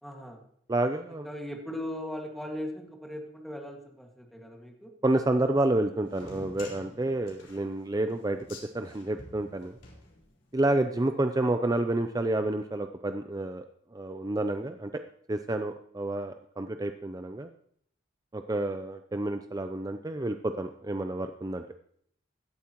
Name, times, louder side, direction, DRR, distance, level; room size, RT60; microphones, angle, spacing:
voice 1, 0.0-0.4 1.1-4.9 11.0-11.1, left 1 dB, ahead, 1 dB, 1.9 m, -39 dB
voice 2, 0.7-1.3 5.0-8.4 8.7-9.8 10.5-13.6 13.9-14.9 15.3-17.5 18.3-21.6, right 2 dB, 20° right, 7 dB, 0.5 m, -29 dB
sound 1, 6.1-10.7, left 2 dB, 70° left, 4.4 m, -49 dB
17.0 x 12.5 x 3.0 m, 0.65 s
head